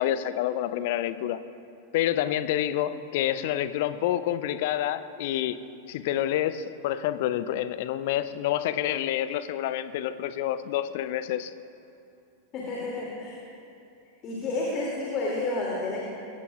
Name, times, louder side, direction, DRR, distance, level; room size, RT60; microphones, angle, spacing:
voice 1, 0.0-1.4 1.9-5.6 5.9-11.5, left 12 dB, 50° left, 13 dB, 0.6 m, -28 dB
voice 2, 12.5-13.4 14.2-16.0, left 2 dB, 35° left, -4 dB, 2.8 m, -30 dB
22.5 x 17.0 x 2.5 m, 2.7 s
figure-of-eight pair, 90°, 0 cm